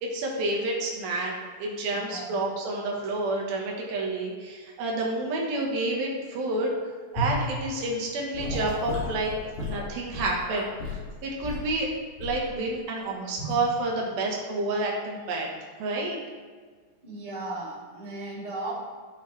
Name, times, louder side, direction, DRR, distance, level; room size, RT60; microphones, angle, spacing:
voice 1, 0.0-6.7 7.1-9.3 9.7-11.9 12.2-15.5 15.8-16.2, right 2 dB, 80° right, -1 dB, 3.1 m, -29 dB
voice 2, 1.9-2.4 17.0-18.7, right 2 dB, 15° right, -9 dB, 2.5 m, -36 dB
Gurgling / Sink (filling or washing) / Liquid, 7.2-7.4 8.3-11.0 11.4-11.7 12.2-12.5 13.4-13.6, left 2 dB, 90° left, 4.2 m, -32 dB
14.5 x 5.7 x 3.3 m, 1.5 s
omnidirectional pair, 4.1 m